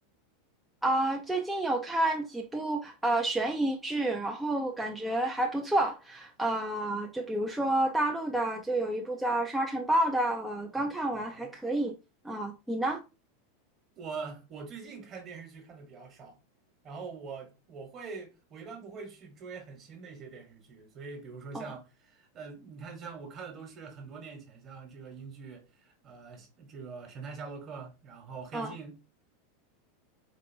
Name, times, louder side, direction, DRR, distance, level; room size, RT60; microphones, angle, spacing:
voice 1, 0.8-11.9 12.2-13.0 21.5-21.6 28.5-28.7, right 1 dB, 5° right, 0.4 m, -29 dB
voice 2, 11.1-11.5 14.0-16.4 16.8-29.0, right 5 dB, 35° right, 1.2 m, -44 dB
4.0 x 2.6 x 2.6 m
supercardioid pair, 135°, 0 cm